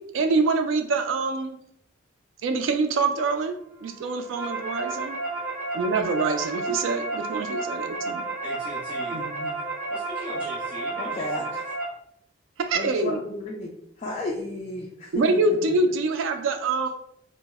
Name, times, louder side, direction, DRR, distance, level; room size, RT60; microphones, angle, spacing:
voice 1, 0.1-1.6 2.4-3.5 3.8-5.2 5.7-8.2 9.1-9.5 12.7-13.2 15.1-16.9, right 3 dB, 80° right, 6 dB, 0.3 m, -25 dB
sound 1, 4.0-11.8, right 3 dB, 40° right, 1.0 m, -31 dB
voice 2, 8.4-9.5 9.9-11.5, right 1 dB, 5° right, -9 dB, 0.7 m, -40 dB
voice 3, 11.0-11.6 12.7-15.4, left 1 dB, 35° left, -3 dB, 0.3 m, -33 dB
2.0 x 2.0 x 3.3 m, 0.71 s
head